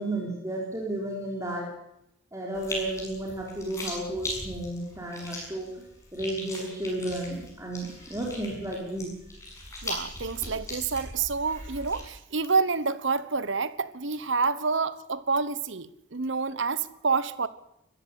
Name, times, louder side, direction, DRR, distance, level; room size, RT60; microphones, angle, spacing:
voice 1, 0.0-1.7 2.3-5.7 6.1-9.1, right 1 dB, 15° right, 4.0 m, -33 dB
sound 1, 2.5-12.0, left 1 dB, 15° left, 7.0 m, -39 dB
voice 2, 9.8-17.5, right 4 dB, 65° right, 1.1 m, -28 dB
22.0 x 14.5 x 8.3 m
head